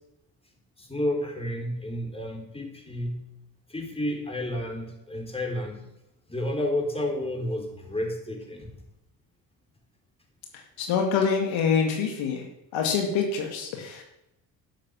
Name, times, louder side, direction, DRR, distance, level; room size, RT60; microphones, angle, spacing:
voice 1, 0.8-3.2 3.7-5.8 6.3-8.7, left 1 dB, 10° left, 1 dB, 4.5 m, -31 dB
voice 2, 10.5-12.4 12.7-14.0, left 6 dB, 70° left, 2 dB, 2.3 m, -26 dB
11.5 x 7.6 x 7.6 m, 0.87 s
hypercardioid pair, 55°, 48 cm